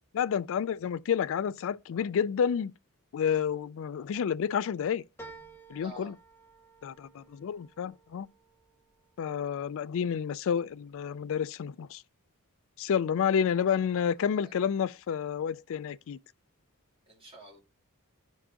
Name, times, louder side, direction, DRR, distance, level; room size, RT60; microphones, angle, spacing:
voice 1, 0.1-2.7 3.1-5.0 5.7-6.1 6.8-8.3 9.2-12.0 12.8-16.2, left 7 dB, 60° left, 0.3 m, -30 dB
sound 1, 5.2-9.9 10.4-11.1 11.5-11.6, right 3 dB, 10° left, 1.3 m, -53 dB
voice 2, 5.8-6.1 7.2-7.4 13.5-13.8 14.2-14.5 17.1-17.6, right 2 dB, 25° right, 3.1 m, -51 dB
11.0 x 4.5 x 2.8 m
head